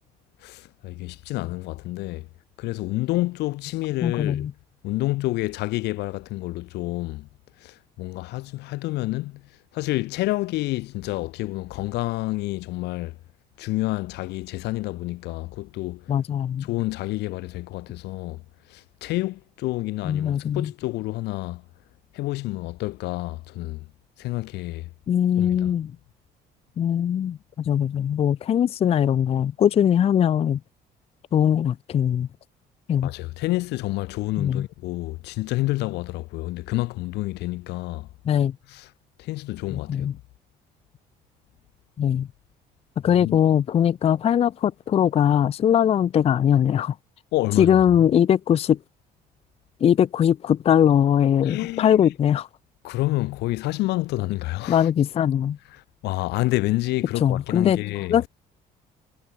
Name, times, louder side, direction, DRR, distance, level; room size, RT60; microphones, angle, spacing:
voice 1, 0.4-2.3 2.6-4.5 4.8-7.3 7.6-9.4 9.7-13.2 13.6-16.1 16.6-18.4 18.7-21.6 22.1-23.9 24.2-24.9 25.4-25.7 33.0-38.1 38.7-38.9 39.2-40.1 43.2-43.4 47.3-47.8 51.4-52.0 52.8-54.9 55.7-58.2, left 19 dB, 80° left, 0.9 m, -29 dB
voice 2, 4.0-4.5 16.1-16.7 20.0-20.7 25.1-25.9 26.8-30.6 31.3-32.3 32.9-33.1 34.4-34.6 38.3-38.6 39.7-40.1 42.0-42.3 43.0-47.0 47.6-48.8 49.8-52.5 54.7-55.6 57.2-57.8 58.1-58.3, left 9 dB, 35° left, 0.4 m, -21 dB
cardioid pair, 110°, 17 cm